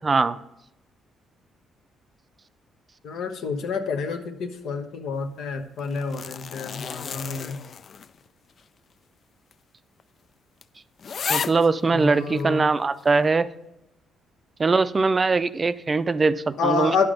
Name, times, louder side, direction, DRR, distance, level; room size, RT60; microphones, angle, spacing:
voice 1, 0.0-0.4 11.3-13.5 14.6-17.1, right 4 dB, 30° right, 14 dB, 0.4 m, -21 dB
voice 2, 3.0-7.6 11.9-12.7 16.6-17.1, left 5 dB, 75° left, 6 dB, 1.0 m, -28 dB
sound 1, 5.8-8.3 8.6-8.7 9.5-9.6 10.0-10.1 10.6-10.7 11.0-11.7 12.4-12.5, left 6 dB, 55° left, 0.3 m, -32 dB
10.0 x 5.9 x 5.0 m, 0.88 s
cardioid pair, 80°, 0 cm